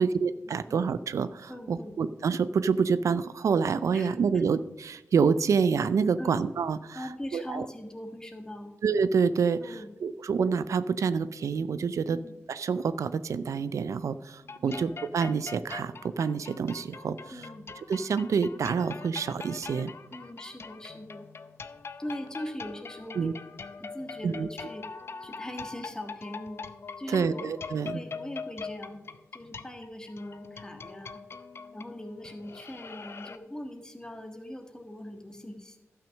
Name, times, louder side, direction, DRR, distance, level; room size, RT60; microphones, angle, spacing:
voice 1, 0.0-7.0 7.3-7.7 8.8-12.2 12.5-17.3 17.9-19.9 23.2-23.3 24.2-24.5 27.1-28.0, right 6 dB, 80° right, 14 dB, 0.4 m, -27 dB
voice 2, 1.5-1.9 3.9-4.4 6.2-6.4 6.9-8.7 9.6-9.9 12.0-12.3 14.6-14.8 17.3-17.6 20.1-21.3 22.0-23.3 23.8-24.9 25.2-26.6 27.0-27.5 27.9-29.0 29.3-31.2 31.7-35.8, left 1 dB, 15° left, 4 dB, 1.5 m, -41 dB
sound 1, 14.4-33.4, left 4 dB, 50° left, 0.6 m, -43 dB
12.0 x 5.8 x 6.4 m, 0.95 s
wide cardioid pair, 105°, 5 cm